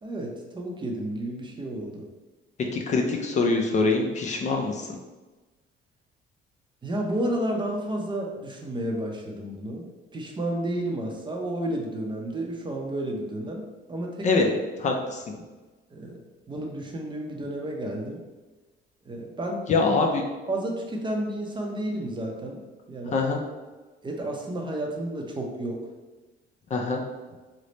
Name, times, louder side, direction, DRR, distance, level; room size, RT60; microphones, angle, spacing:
voice 1, 0.0-2.1 6.8-14.5 15.9-16.2 16.5-18.2 19.1-19.7 20.5-22.6 22.9-23.2 24.0-25.9, right 1 dB, 25° right, 0 dB, 0.6 m, -31 dB
voice 2, 2.7-4.9 14.2-14.5 14.8-15.2 19.7-20.2 23.1-23.4 26.7-27.0, left 3 dB, 40° left, 1 dB, 0.4 m, -24 dB
3.2 x 2.1 x 3.9 m, 1.2 s
cardioid pair, 125°, 20 cm